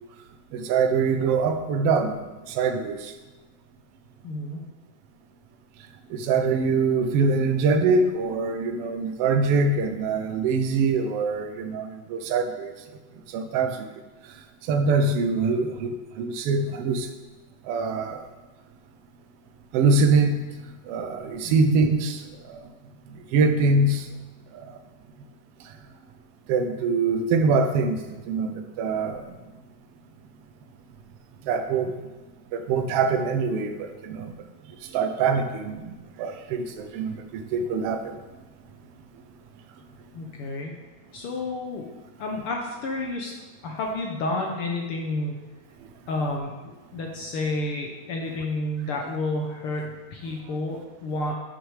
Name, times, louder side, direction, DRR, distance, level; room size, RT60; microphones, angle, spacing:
voice 1, 0.5-2.1 2.6-3.0 6.1-12.7 13.3-13.8 14.7-17.1 17.7-18.2 19.7-20.3 20.9-22.2 23.3-24.0 26.5-28.0 28.3-29.2 31.5-31.9 32.5-34.3 34.9-35.8 36.2-38.0, right 4 dB, 80° right, 6 dB, 1.3 m, -23 dB
voice 2, 4.2-4.6 21.4-21.8 40.1-40.7 41.1-41.9 42.2-43.3 43.6-45.4 46.1-51.3, left 2 dB, 75° left, 1 dB, 1.3 m, -30 dB
10.5 x 6.3 x 4.8 m, 1.2 s
omnidirectional pair, 3.6 m